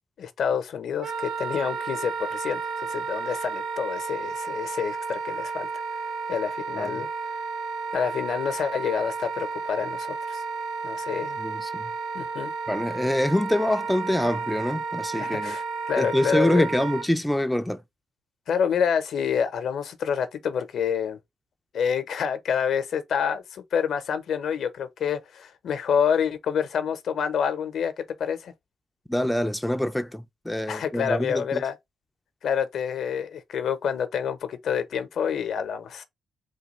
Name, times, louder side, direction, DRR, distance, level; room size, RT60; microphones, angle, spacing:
voice 1, 0.2-5.7 6.3-7.1 7.9-10.4 10.8-11.4 12.1-12.5 15.2-16.7 18.5-21.2 21.7-28.5 30.7-31.8 32.4-36.0, left 7 dB, 70° left, 0.6 m, -28 dB
Wind instrument woodwind instrument, 1.0-17.1, right 4 dB, 70° right, 0.6 m, -32 dB
voice 2, 11.4-11.9 12.7-15.5 16.0-17.8 29.1-31.6, left 1 dB, 5° left, 0.3 m, -25 dB
3.4 x 2.2 x 3.0 m
cardioid pair, 75°, 0 cm